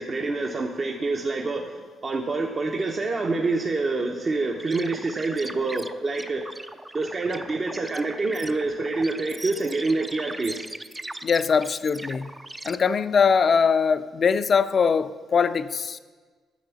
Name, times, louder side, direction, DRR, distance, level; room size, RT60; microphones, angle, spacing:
voice 1, 0.0-6.4 6.9-10.7, right 3 dB, 35° right, 1 dB, 0.9 m, -27 dB
sound 1, 4.6-12.8, right 1 dB, 15° right, 0.5 m, -40 dB
voice 2, 11.2-12.3 12.6-16.0, left 6 dB, 45° left, 13 dB, 0.5 m, -22 dB
10.5 x 7.1 x 7.0 m, 1.5 s
cardioid pair, 90°, 0 cm